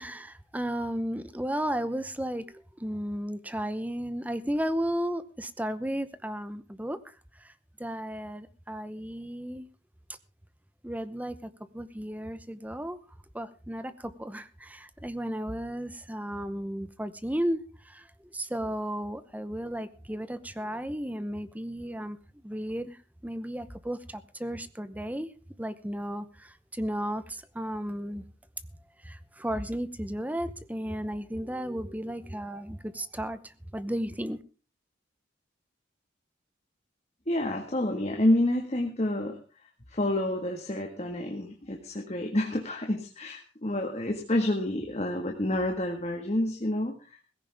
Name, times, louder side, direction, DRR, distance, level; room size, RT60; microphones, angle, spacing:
voice 1, 0.0-7.5 7.8-9.7 10.8-13.0 13.3-22.2 22.4-25.3 25.6-28.2 29.0-34.4, equal, 10° right, 13 dB, 0.8 m, -34 dB
voice 2, 37.3-39.4 39.9-47.2, left 1 dB, 35° left, 3 dB, 1.6 m, -28 dB
17.5 x 15.5 x 3.5 m, 0.35 s
head